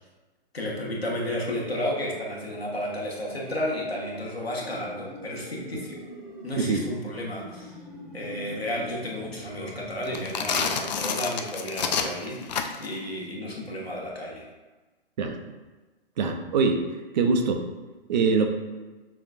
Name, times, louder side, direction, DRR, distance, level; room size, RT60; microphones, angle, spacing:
voice 1, 0.5-6.0 6.4-7.7 8.1-12.5 12.8-14.5, left 1 dB, 85° left, -3 dB, 1.1 m, -32 dB
sound 1, 3.3-10.7, equal, 10° right, 0.8 m, -43 dB
sound 2, 10.1-13.0, left 6 dB, 50° left, 0.4 m, -29 dB
voice 2, 15.2-15.5 16.2-16.8 17.1-17.6 18.1-18.5, right 4 dB, 45° right, 5 dB, 0.5 m, -23 dB
5.6 x 2.3 x 2.4 m, 1.2 s
figure-of-eight pair, 115°, 30 cm